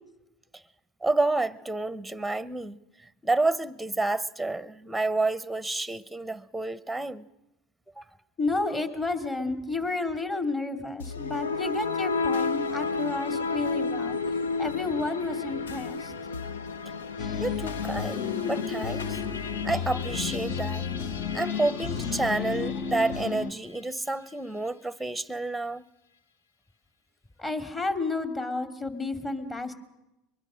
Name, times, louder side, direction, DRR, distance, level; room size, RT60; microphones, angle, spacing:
voice 1, 1.0-2.8 3.2-7.3 8.0-8.1 17.4-19.2 19.6-20.8 21.3-25.8, right 2 dB, ahead, 17 dB, 0.9 m, -29 dB
voice 2, 8.4-14.2 14.6-16.1 27.4-29.7, left 3 dB, 20° left, 8 dB, 2.7 m, -31 dB
sound 1, 11.0-23.3, left 4 dB, 90° left, 0.7 m, -33 dB
sound 2, 17.2-23.5, left 6 dB, 55° left, 1.3 m, -32 dB
22.5 x 22.5 x 6.4 m, 0.94 s
hypercardioid pair, 90°, 0 cm